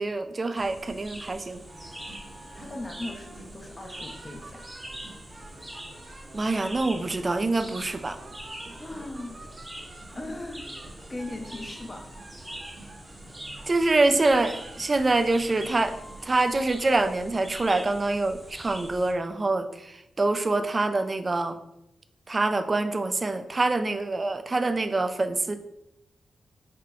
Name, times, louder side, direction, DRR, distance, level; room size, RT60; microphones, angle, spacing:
voice 1, 0.0-1.6 6.3-8.2 8.7-8.8 13.7-21.6 22.3-25.6, right 2 dB, 35° right, 9 dB, 0.4 m, -25 dB
sound 1, 0.6-19.1, right 1 dB, 15° right, 0.8 m, -43 dB
sound 2, 1.7-16.4, right 2 dB, 55° right, 1.1 m, -48 dB
voice 2, 2.6-4.7 8.8-9.4 10.1-10.7 11.1-12.1, left 2 dB, 25° left, 3 dB, 0.7 m, -38 dB
5.0 x 2.2 x 3.7 m, 0.83 s
cardioid pair, 75°, 0 cm